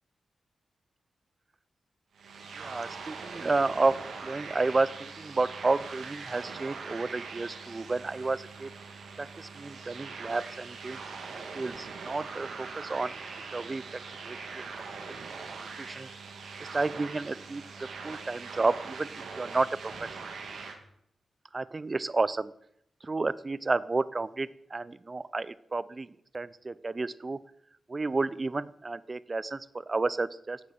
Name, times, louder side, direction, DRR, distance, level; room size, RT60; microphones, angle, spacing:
sound 1, 2.1-20.8, right 4 dB, 80° right, 1.9 m, -42 dB
voice 1, 2.6-3.9 4.2-8.7 9.2-11.0 11.3-13.1 13.5-13.8 14.2-14.7 15.8-16.1 16.6-17.6 18.0-20.2 21.5-22.5 23.0-26.1 26.3-27.4 27.9-30.6, right 3 dB, 35° right, 18 dB, 0.6 m, -31 dB
11.5 x 8.3 x 6.6 m, 0.73 s
cardioid pair, 55°, 0 cm